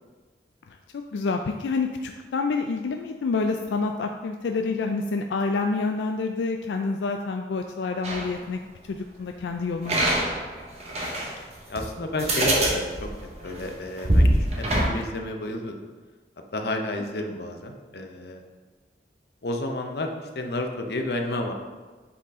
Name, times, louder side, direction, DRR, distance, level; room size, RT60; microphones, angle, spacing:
voice 1, 0.9-8.6 8.9-10.2 17.2-17.3, left 4 dB, 90° left, 4 dB, 0.4 m, -28 dB
sound 1, 8.0-8.3 9.9-11.3 11.8-11.9 12.2-14.9, right 1 dB, 40° right, 1.1 m, -23 dB
voice 2, 11.4-13.1 13.4-14.3 14.6-15.7 16.5-18.4 19.4-21.5, left 1 dB, 65° left, 3 dB, 0.7 m, -31 dB
7.8 x 4.1 x 3.7 m, 1.3 s
head